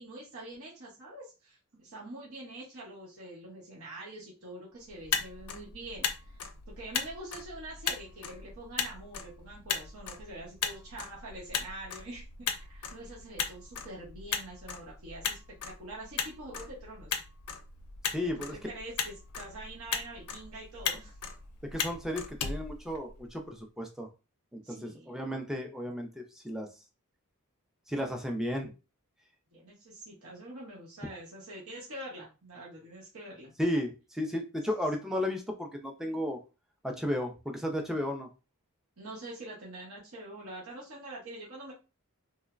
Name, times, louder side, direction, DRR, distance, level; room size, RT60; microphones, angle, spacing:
voice 1, 0.0-6.4 6.7-15.4 15.6-17.2 18.2-21.1 24.6-25.3 29.5-33.5 39.0-41.7, right 1 dB, 70° right, -4 dB, 0.9 m, -45 dB
Motor vehicle (road), 4.9-23.4, left 7 dB, 85° left, 0.4 m, -37 dB
voice 2, 18.1-18.5 21.7-24.1 24.5-26.7 27.9-28.7 33.6-36.4 36.8-38.3, left 1 dB, ahead, 3 dB, 0.4 m, -34 dB
3.1 x 2.0 x 2.4 m, 0.30 s
head